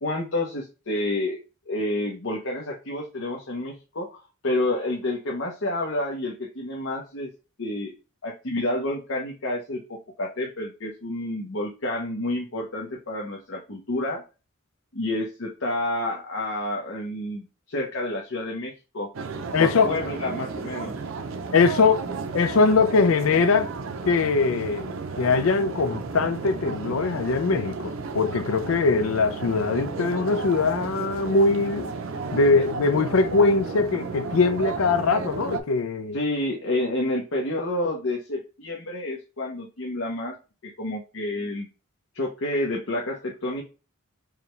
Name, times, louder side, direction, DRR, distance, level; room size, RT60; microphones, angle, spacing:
voice 1, 0.0-1.4 1.7-4.2 4.4-7.3 7.6-7.9 8.2-14.2 14.9-19.1 19.6-21.0 32.5-32.6 36.1-40.4 40.6-41.7 42.1-43.6, left 1 dB, 70° left, 0.9 m, -29 dB
sound 1, 19.1-35.6, right 4 dB, 70° right, 0.5 m, -33 dB
voice 2, 19.5-19.9 21.5-23.7 24.1-31.9 32.3-36.2, left 4 dB, 90° left, 0.5 m, -22 dB
4.8 x 2.3 x 3.2 m
head